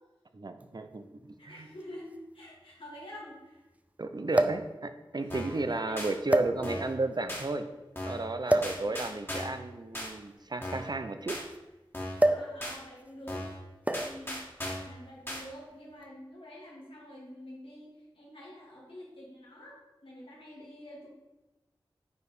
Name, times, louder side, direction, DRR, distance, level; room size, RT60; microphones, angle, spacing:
voice 1, 0.3-1.7 4.0-7.7 8.1-11.4, right 2 dB, 50° right, 8 dB, 0.8 m, -33 dB
sound 1, 0.6-0.7 1.8-1.9 2.1-2.2 4.3-4.7 5.5-5.7 6.3-7.0 8.5-8.8 9.9-11.6 12.2-12.6 12.8-13.1 13.9-14.2 15.2-15.5, right 1 dB, 15° right, 0.6 m, -27 dB
voice 2, 1.4-3.6 5.2-5.4 5.8-6.1 8.4-9.0 12.2-13.5 14.0-14.4 14.8-21.1, left 1 dB, 80° left, -5 dB, 3.2 m, -47 dB
sound 2, 5.3-5.6 6.0-6.1 6.6-6.9 7.3-7.4 7.9-8.3 8.6-9.6 9.9-10.1 10.6-10.9 11.3-11.4 11.9-12.3 12.6-12.8 13.3-13.6 13.9-14.9 15.3-15.4, left 1 dB, 25° left, 2.2 m, -37 dB
9.6 x 4.9 x 5.0 m, 1.1 s
wide cardioid pair, 70°, 9 cm